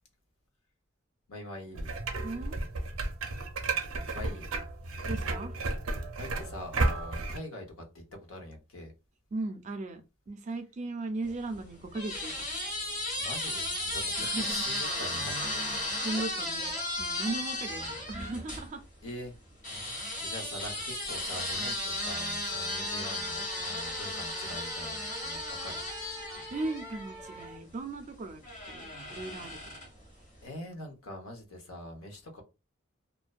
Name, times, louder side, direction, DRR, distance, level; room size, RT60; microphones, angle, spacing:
voice 1, 1.3-1.9 4.1-4.5 6.2-8.9 13.2-15.6 17.7-17.9 19.0-19.3 20.2-25.9 30.4-32.4, left 1 dB, 80° left, 0.7 m, -43 dB
sound 1, 1.8-7.4, right 2 dB, 85° right, 0.6 m, -33 dB
voice 2, 2.2-2.6 5.1-5.5 6.0-6.1 9.3-10.0 10.3-12.3 14.2-14.7 16.0-16.7 17.0-18.8 26.5-28.4 28.7-29.6, right 2 dB, 35° right, 0.4 m, -37 dB
sound 2, 11.3-18.7 19.6-27.5 28.4-30.0, left 1 dB, 35° left, 1.1 m, -35 dB
Wind instrument woodwind instrument, 22.5-27.6, equal, 60° left, 1.3 m, -46 dB
2.5 x 2.1 x 2.3 m
head